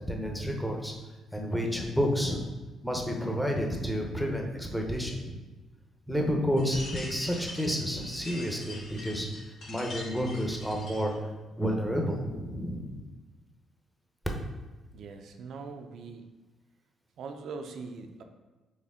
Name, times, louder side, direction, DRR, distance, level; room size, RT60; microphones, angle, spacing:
voice 1, 0.1-0.9 1.3-2.4 2.8-5.4 6.1-9.3 9.7-11.3 11.6-13.0, equal, ahead, 0 dB, 0.8 m, -30 dB
sound 1, 6.6-11.1, left 2 dB, 70° left, 1.3 m, -44 dB
voice 2, 14.9-16.3 17.2-18.2, right 4 dB, 70° right, 5 dB, 0.4 m, -41 dB
4.3 x 3.1 x 3.7 m, 1.2 s
cardioid pair, 90°, 0 cm